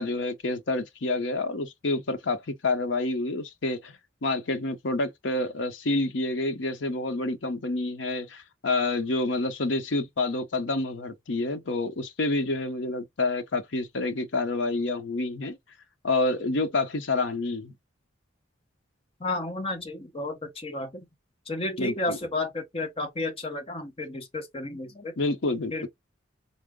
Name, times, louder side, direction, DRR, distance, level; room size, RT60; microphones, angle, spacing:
voice 1, 0.0-15.6 16.0-17.7 21.8-22.2 25.2-25.9, left 2 dB, 70° left, 0.7 m, -28 dB
voice 2, 19.2-21.1 21.5-25.1 25.7-25.9, left 2 dB, 30° left, 0.9 m, -32 dB
4.5 x 2.0 x 3.5 m
head